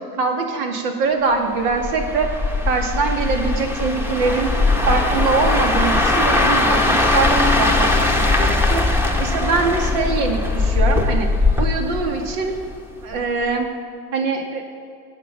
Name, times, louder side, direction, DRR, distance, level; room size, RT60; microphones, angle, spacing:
voice 1, 0.1-2.3 2.6-4.5 4.9-8.8 9.2-11.3 11.6-12.6 13.0-13.7 14.1-14.6, right 4 dB, 65° right, 3 dB, 2.3 m, -23 dB
sound 1, 1.7-12.8 13.1-13.4, left 2 dB, 5° right, 1.6 m, -19 dB
18.5 x 8.3 x 6.0 m, 2.3 s
hypercardioid pair, 85°, 48 cm